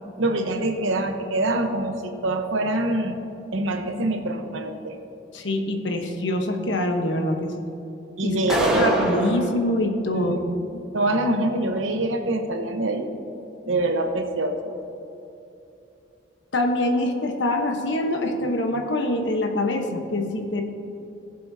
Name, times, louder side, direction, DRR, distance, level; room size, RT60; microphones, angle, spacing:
voice 1, 0.2-3.2 3.5-5.0 8.2-9.0 10.1-13.1 13.6-14.7, right 2 dB, 85° right, 5 dB, 1.0 m, -25 dB
voice 2, 5.3-7.7 8.2-8.4 8.7-10.3 16.5-20.6, left 1 dB, 65° left, 4 dB, 1.1 m, -24 dB
sound 1, 8.5-9.5, right 1 dB, 5° right, 1.2 m, -23 dB
20.0 x 7.6 x 2.8 m, 2.9 s
head